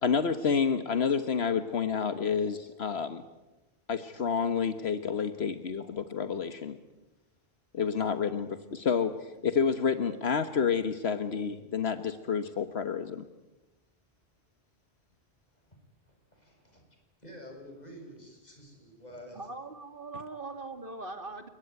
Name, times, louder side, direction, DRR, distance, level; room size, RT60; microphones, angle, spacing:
voice 1, 0.0-3.2 3.9-5.8 6.1-6.8 7.7-13.3, left 6 dB, 75° left, 10 dB, 1.5 m, -29 dB
voice 2, 16.0-16.9 17.2-19.5, equal, 40° left, 2 dB, 7.8 m, -49 dB
voice 3, 19.3-21.5, right 3 dB, 55° right, 8 dB, 2.5 m, -41 dB
30.0 x 18.5 x 9.9 m, 1.0 s
omnidirectional pair, 1.1 m